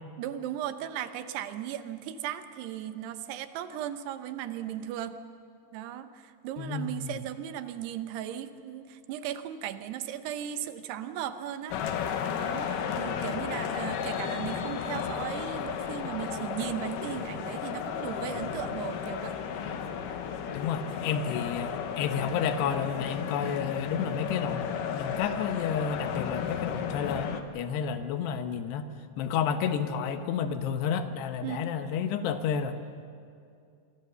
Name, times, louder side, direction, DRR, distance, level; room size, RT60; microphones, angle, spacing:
voice 1, 0.2-5.2 5.7-11.8 12.3-12.7 13.0-19.4 31.4-31.7, right 10 dB, 80° right, 10 dB, 3.0 m, -37 dB
voice 2, 6.6-7.2 13.2-13.3 20.5-24.7 24.9-28.9 29.2-32.8, left 7 dB, 85° left, 9 dB, 3.2 m, -31 dB
sound 1, 11.7-27.4, left 7 dB, 65° left, 2.4 m, -33 dB
25.5 x 24.5 x 6.8 m, 2.4 s
omnidirectional pair, 4.7 m